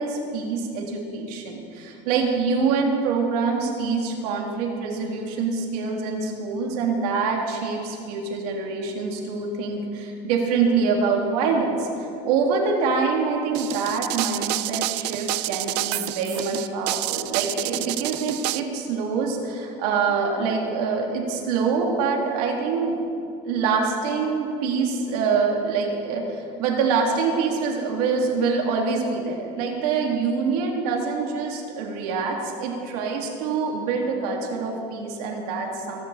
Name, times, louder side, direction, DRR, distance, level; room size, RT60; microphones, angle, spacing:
voice 1, 0.0-23.0 23.4-36.1, right 5 dB, 70° right, 0 dB, 2.9 m, -25 dB
sound 1, 13.5-18.6, right 17 dB, 90° right, 0.6 m, -28 dB
23.5 x 12.5 x 4.2 m, 2.6 s
cardioid pair, 180°, 21 cm